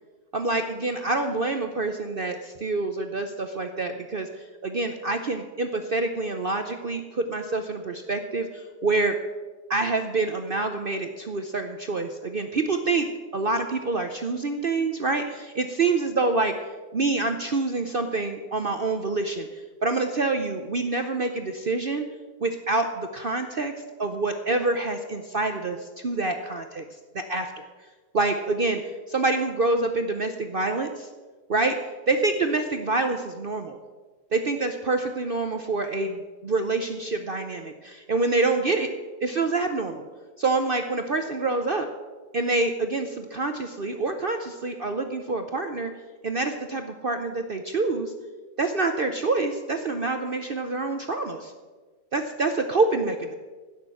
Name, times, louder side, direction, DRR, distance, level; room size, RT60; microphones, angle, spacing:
voice 1, 0.3-4.3 4.6-9.2 9.7-13.1 13.3-16.5 16.9-19.5 19.8-22.1 22.4-23.7 24.0-26.8 27.1-27.6 28.1-28.8 29.1-31.1 31.5-31.8 32.1-33.8 34.3-38.9 39.2-40.0 40.4-41.9 42.3-45.9 46.2-48.1 48.6-51.5 52.1-53.3, right 3 dB, 50° right, 6 dB, 0.7 m, -26 dB
16.0 x 6.6 x 7.5 m, 1.3 s
omnidirectional pair, 1.7 m